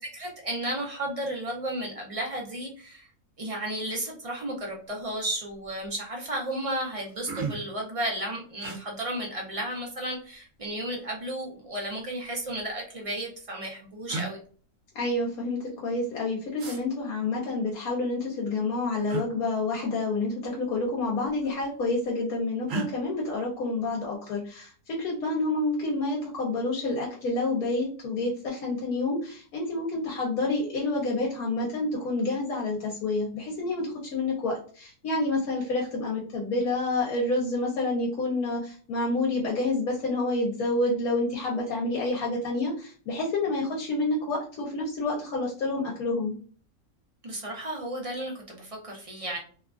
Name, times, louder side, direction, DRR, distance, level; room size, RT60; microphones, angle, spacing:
voice 1, 0.0-3.1 3.4-14.4 47.2-49.4, right 1 dB, 40° right, -1 dB, 0.5 m, -33 dB
sound 1, 4.9-5.1 5.5-6.0 6.5-6.6 6.9-7.8 8.6-8.8 10.0-10.7 11.8-12.7 13.6-13.7 14.1-14.3 16.6-16.8 19.1-19.3 20.6-20.9 21.2-21.8 22.7-22.9, right 4 dB, 65° right, 1.0 m, -36 dB
voice 2, 14.9-46.3, left 2 dB, 80° left, -2 dB, 1.2 m, -28 dB
2.9 x 2.3 x 2.4 m, 0.42 s
omnidirectional pair, 1.5 m